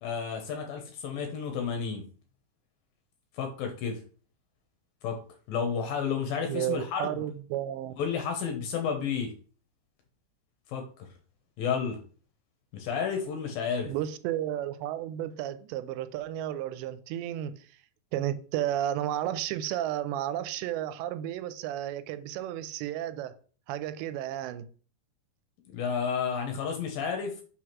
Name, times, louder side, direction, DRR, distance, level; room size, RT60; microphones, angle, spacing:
voice 1, 0.0-2.0 3.4-4.0 5.0-5.2 5.5-7.3 8.0-9.3 10.7-11.1 11.6-12.0 12.7-13.9 25.7-27.4, left 6 dB, 70° left, 2.5 m, -31 dB
voice 2, 6.4-7.9 13.8-17.7 18.1-23.3 23.7-24.7, right 12 dB, 90° right, 2.9 m, -32 dB
5.8 x 4.9 x 5.9 m
omnidirectional pair, 5.0 m